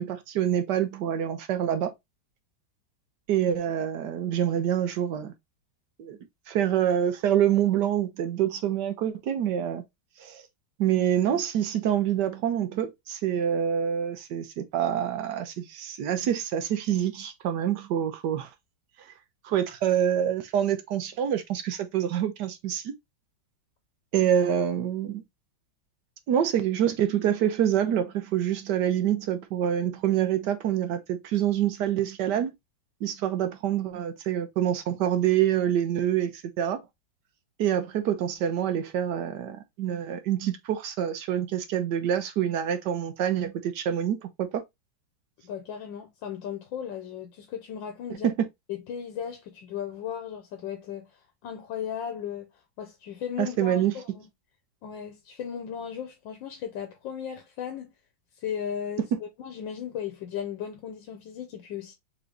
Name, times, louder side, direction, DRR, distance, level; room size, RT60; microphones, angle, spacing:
voice 1, 0.0-1.9 3.3-5.3 6.0-6.2 6.5-9.8 10.2-10.4 10.8-18.5 19.0-19.1 19.4-22.9 24.1-25.2 26.3-32.5 33.0-36.8 37.6-44.6 48.2-48.5 53.4-53.9, right 10 dB, 70° right, 1.3 m, -26 dB
voice 2, 45.4-48.3 48.7-51.1 51.4-52.5 52.8-54.2 54.8-57.9 58.4-61.9, left 8 dB, 85° left, 1.5 m, -36 dB
3.9 x 3.5 x 3.2 m
omnidirectional pair, 2.0 m